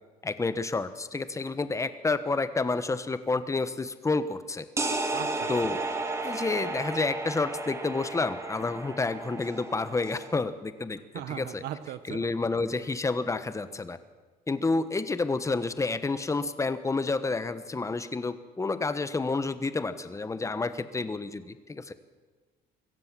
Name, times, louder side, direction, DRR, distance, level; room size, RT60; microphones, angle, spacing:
voice 1, 0.2-4.7 5.5-5.8 6.2-11.0 11.3-11.6 12.0-14.0 14.5-21.9, left 3 dB, 20° left, 13 dB, 1.2 m, -29 dB
sound 1, 4.8-10.3, right 2 dB, 15° right, 2.6 m, -33 dB
voice 2, 5.1-5.7 11.1-12.3, right 11 dB, 75° right, 12 dB, 1.0 m, -38 dB
24.0 x 16.0 x 7.5 m, 1.3 s
cardioid pair, 110°, 17 cm